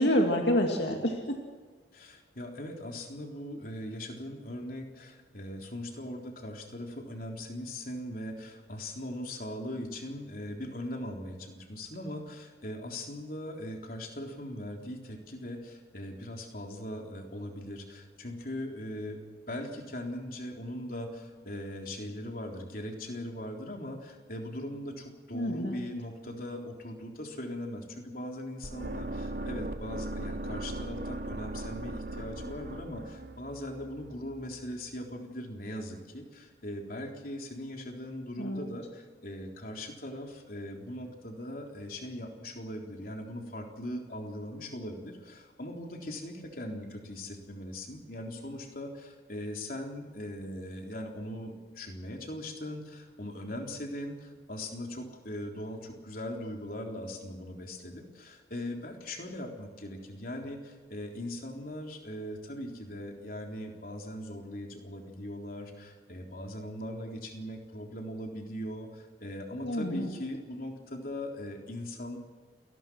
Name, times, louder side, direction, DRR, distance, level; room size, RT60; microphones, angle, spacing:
voice 1, 0.0-1.4 25.3-25.8 38.4-38.7 69.6-70.1, equal, 70° left, 2 dB, 2.3 m, -28 dB
voice 2, 1.9-19.2 19.5-72.2, left 1 dB, 50° left, 2 dB, 3.8 m, -40 dB
sound 1, 28.6-34.7, right 1 dB, 50° right, 1.1 m, -39 dB
29.0 x 19.5 x 6.3 m, 1.5 s
head